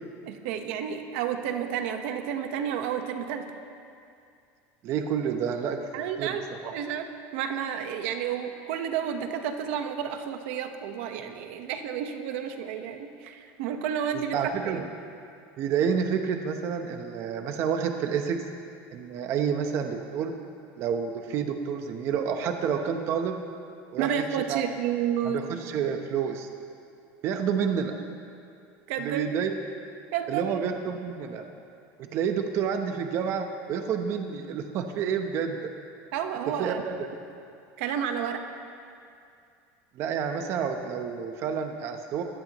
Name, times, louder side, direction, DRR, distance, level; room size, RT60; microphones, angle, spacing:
voice 1, 0.2-3.5 5.9-6.4 6.7-7.1 7.3-14.9 24.0-25.4 28.9-29.3 30.1-30.6 36.1-36.8 37.8-38.4, right 8 dB, 75° right, 6 dB, 1.2 m, -31 dB
voice 2, 4.8-6.4 6.6-6.7 14.3-14.8 15.6-18.4 18.9-20.3 20.8-23.4 23.9-24.6 25.2-26.5 27.2-28.0 29.0-29.5 30.3-31.4 32.1-35.7 36.6-37.1 40.0-42.2, right 7 dB, 45° right, 5 dB, 0.9 m, -29 dB
23.0 x 16.5 x 3.1 m, 2.4 s
cardioid pair, 155°, 7 cm